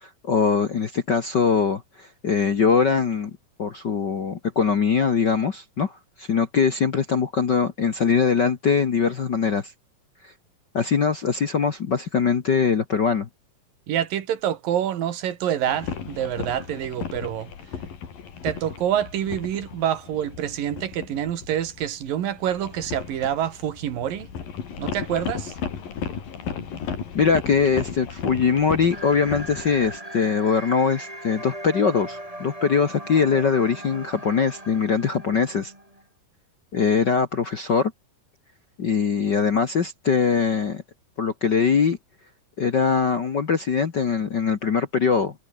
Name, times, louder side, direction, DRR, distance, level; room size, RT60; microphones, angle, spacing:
voice 1, 0.0-3.3 3.6-9.7 10.2-10.3 10.7-13.3 27.1-35.7 36.7-37.9 38.8-40.8 41.2-42.0 42.6-45.3, left 6 dB, 50° left, 1.4 m, -22 dB
voice 2, 13.9-17.5 18.4-24.3 24.8-25.5, right 10 dB, 80° right, 3.6 m, -27 dB
sound 1, 15.7-30.0, left 7 dB, 80° left, 5.3 m, -35 dB
sound 2, 28.9-36.0, right 1 dB, 10° right, 6.7 m, -39 dB
omnidirectional pair, 4.0 m